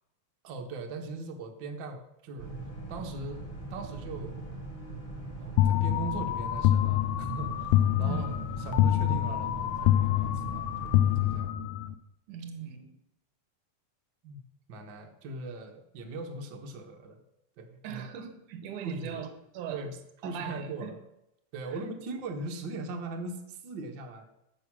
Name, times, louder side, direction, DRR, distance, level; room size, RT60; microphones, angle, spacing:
voice 1, 0.4-2.5 2.9-4.5 5.3-7.7 8.0-10.9 11.2-11.6 14.2-14.4 14.7-17.2 17.6-18.0 18.8-19.3 19.7-19.9 20.2-21.0 21.5-24.2, right 3 dB, 45° right, 3 dB, 1.8 m, -39 dB
Boat Water vehicle, 2.4-11.4, right 3 dB, 25° left, 3.9 m, -41 dB
sound 1, 5.6-11.9, left 13 dB, 85° left, 2.1 m, -26 dB
voice 2, 8.0-8.4 12.3-12.9 17.8-19.8 20.2-20.9 21.7-21.9, right 7 dB, 90° right, 8 dB, 2.7 m, -39 dB
12.0 x 7.8 x 6.2 m, 0.82 s
omnidirectional pair, 3.4 m